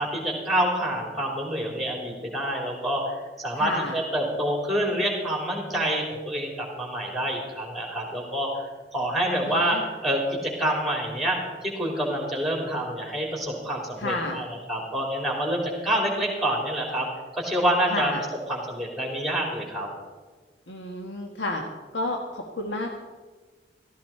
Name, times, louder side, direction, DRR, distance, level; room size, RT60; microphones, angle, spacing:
voice 1, 0.0-17.1 17.3-18.1 18.5-19.9, right 1 dB, ahead, 0 dB, 3.5 m, -27 dB
voice 2, 3.5-4.0 9.4-9.8 14.0-14.4 17.9-18.2 20.7-21.6 21.9-22.9, left 2 dB, 90° left, 2 dB, 1.5 m, -31 dB
15.5 x 15.0 x 4.4 m, 1.4 s
head